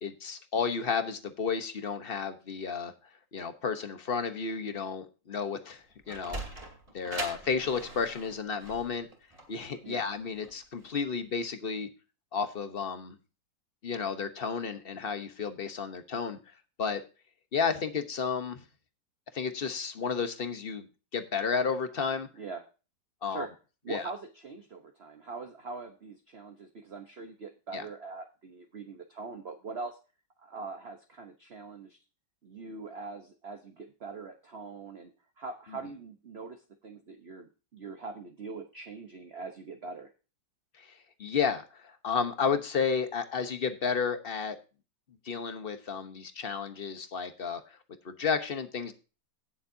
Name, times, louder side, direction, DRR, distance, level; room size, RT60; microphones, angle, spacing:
voice 1, 0.0-2.9 3.3-6.4 6.9-9.1 9.5-11.9 12.3-13.1 13.8-16.4 16.8-17.0 17.5-18.6 19.3-20.9 21.1-22.3 23.2-23.5 23.9-24.0 27.7-27.8 40.8-40.9 41.2-44.6 45.2-47.6 48.0-48.9, left 5 dB, 40° left, 9 dB, 1.0 m, -32 dB
Sliding door, 5.8-11.0, right 2 dB, 20° right, 2.5 m, -42 dB
voice 2, 23.8-30.0 30.4-32.0 32.4-40.1, right 4 dB, 40° right, 5 dB, 1.0 m, -42 dB
17.5 x 7.2 x 2.7 m, 0.32 s
omnidirectional pair, 2.0 m